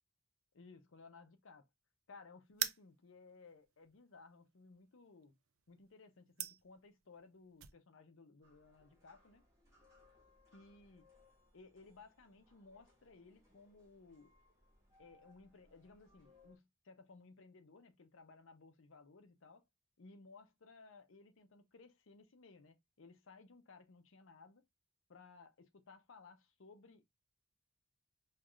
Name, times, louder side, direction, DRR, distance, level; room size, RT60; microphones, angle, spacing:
voice 1, 0.5-1.6 2.1-5.4 5.7-9.4 10.5-11.0 11.5-14.3 15.0-19.6 20.0-24.6 25.1-27.0, left 4 dB, 70° left, 0.6 m, -60 dB
sound 1, 2.5-7.7, right 12 dB, 80° right, 0.4 m, -44 dB
sound 2, 8.4-16.6, left 2 dB, 15° right, 1.2 m, -69 dB
4.6 x 2.4 x 2.3 m
head